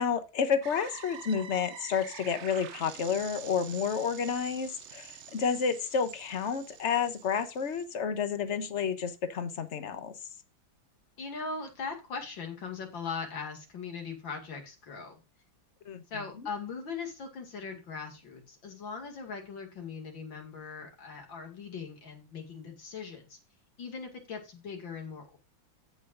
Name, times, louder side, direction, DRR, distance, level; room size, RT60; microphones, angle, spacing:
voice 1, 0.0-10.1 15.9-16.0, left 6 dB, 45° left, 10 dB, 1.1 m, -30 dB
sound 1, 0.6-7.8, right 8 dB, 75° right, 0.6 m, -47 dB
voice 2, 11.2-15.2 16.1-23.4 23.8-25.4, left 5 dB, 70° left, 3 dB, 3.1 m, -40 dB
16.0 x 5.6 x 2.6 m, 0.29 s
omnidirectional pair, 2.2 m